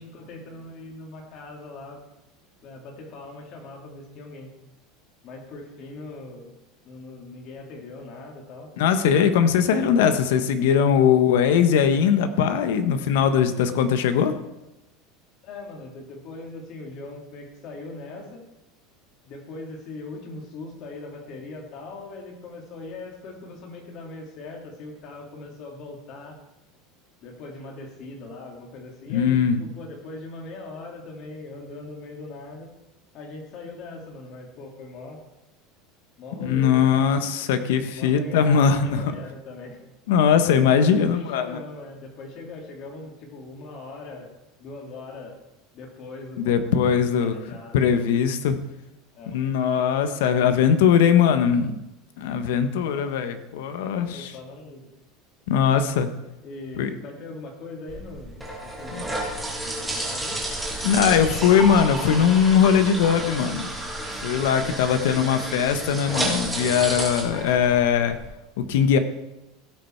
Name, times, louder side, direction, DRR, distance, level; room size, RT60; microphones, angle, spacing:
voice 1, 0.0-2.0 2.6-4.5 5.2-6.6 6.8-8.7 15.4-18.4 19.3-26.4 27.2-32.7 33.1-35.2 36.2-37.1 37.9-39.8 40.8-44.3 44.6-45.4 45.7-47.8 49.1-49.4 52.6-53.0 53.8-54.9 56.4-60.4, left 3 dB, 45° left, 1 dB, 2.6 m, -40 dB
voice 2, 8.8-14.3 29.1-29.6 36.4-39.1 40.1-41.6 46.4-47.3 47.7-48.6 49.3-51.7 52.2-54.3 55.5-56.1 56.8-56.9 58.9-59.0 60.8-63.7 64.2-68.2 68.6-69.0, left 7 dB, 80° left, 10 dB, 1.0 m, -20 dB
sound 1, 57.9-68.3, right 1 dB, 5° right, 2.1 m, -31 dB
16.5 x 5.5 x 4.5 m, 0.96 s
supercardioid pair, 160°, 0 cm